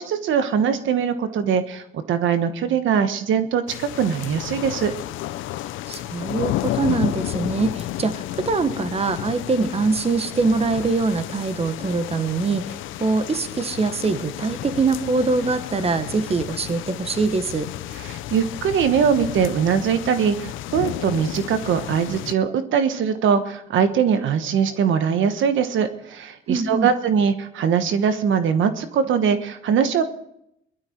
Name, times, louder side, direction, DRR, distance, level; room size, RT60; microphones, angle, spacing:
voice 1, 0.0-4.9 18.0-30.0, right 7 dB, 75° right, 9 dB, 1.2 m, -21 dB
sound 1, 3.7-22.3, left 14 dB, 85° left, 0.6 m, -32 dB
voice 2, 5.9-17.7 26.5-26.9, right 3 dB, 30° right, 10 dB, 1.3 m, -23 dB
19.5 x 12.5 x 4.5 m, 0.75 s
cardioid pair, 90°, 20 cm